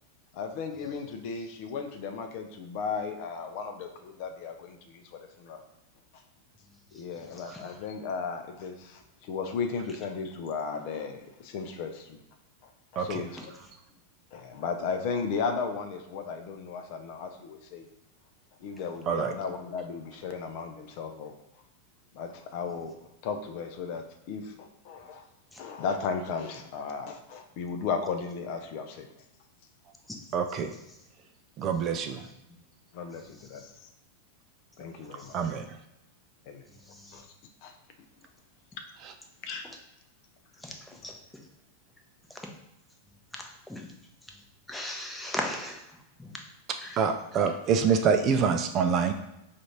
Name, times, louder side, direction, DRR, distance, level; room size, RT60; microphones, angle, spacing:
voice 1, 0.3-5.6 6.9-12.2 12.6-13.5 14.3-17.9 18.6-21.3 22.1-22.9 23.2-25.2 25.6-29.1 32.9-33.9 34.8-35.4 36.5-36.6 37.1-37.3 37.6-37.7 39.4-39.6, left 5 dB, 45° left, 5 dB, 0.5 m, -35 dB
voice 2, 30.3-30.7 31.6-32.2 35.3-35.7 47.0-49.1, right 6 dB, 35° right, 7 dB, 0.3 m, -26 dB
voice 3, 40.6-41.1 43.7-43.8 44.7-45.8 46.2-46.3 46.8-47.0, left 1 dB, 5° left, 1 dB, 0.7 m, -36 dB
4.9 x 2.5 x 2.9 m, 0.87 s
figure-of-eight pair, 90°, 0 cm